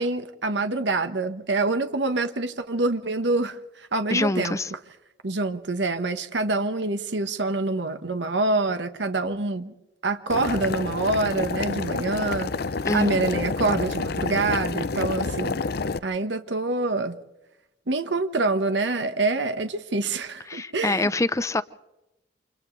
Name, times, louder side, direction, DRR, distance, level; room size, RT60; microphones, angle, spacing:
voice 1, 0.0-4.6 5.2-9.7 10.0-12.5 12.9-15.7 16.0-17.2 17.9-21.1, right 3 dB, 75° right, 1.4 m, -26 dB
voice 2, 4.1-4.7 12.8-13.2 20.5-21.6, left 2 dB, 15° left, 0.7 m, -25 dB
Boiling, 10.3-16.0, left 4 dB, 60° left, 0.6 m, -28 dB
29.0 x 28.0 x 3.3 m
head